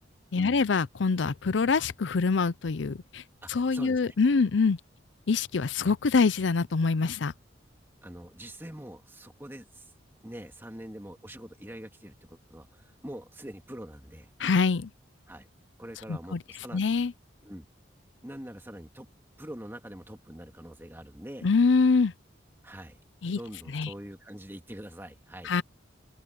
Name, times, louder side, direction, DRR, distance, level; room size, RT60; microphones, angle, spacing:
voice 1, 0.3-3.2 3.5-4.8 5.3-7.3 14.4-14.9 16.1-16.4 16.7-17.1 21.4-22.1 23.2-23.4 23.7-23.9 25.4-25.6, left 4 dB, 80° left, 0.6 m, -25 dB
voice 2, 3.4-4.1 8.0-9.9 10.2-14.3 15.3-15.5 15.8-16.8 17.4-17.7 18.2-19.1 19.4-21.5 22.6-23.0 23.2-25.5, right 1 dB, 10° right, 2.1 m, -44 dB
open air
head